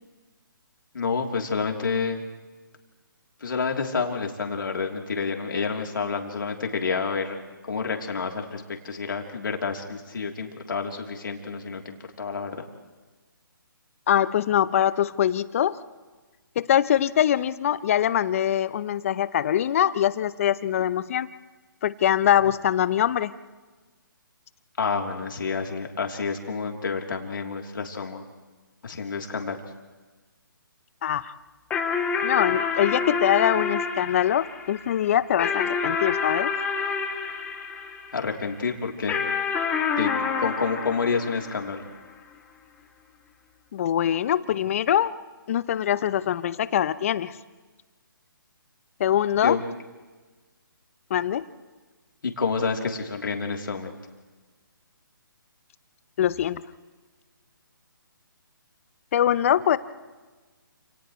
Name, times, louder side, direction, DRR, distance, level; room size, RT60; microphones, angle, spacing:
voice 1, 0.9-2.2 3.4-7.4 7.7-12.6 24.8-28.2 28.8-29.6 38.1-39.2 39.9-41.8 49.4-49.6 52.2-53.9, left 5 dB, 70° left, 2 dB, 3.3 m, -29 dB
voice 2, 14.1-15.8 16.6-21.3 21.8-23.3 31.0-31.3 32.2-36.5 43.7-45.1 45.5-47.4 49.0-49.6 51.1-51.4 56.2-56.6 59.1-59.8, left 10 dB, 40° left, 16 dB, 0.8 m, -23 dB
sound 1, 31.7-38.4 39.1-41.9, left 5 dB, 10° left, 2.6 m, -28 dB
29.0 x 28.0 x 3.2 m, 1.3 s
figure-of-eight pair, 150°, 12 cm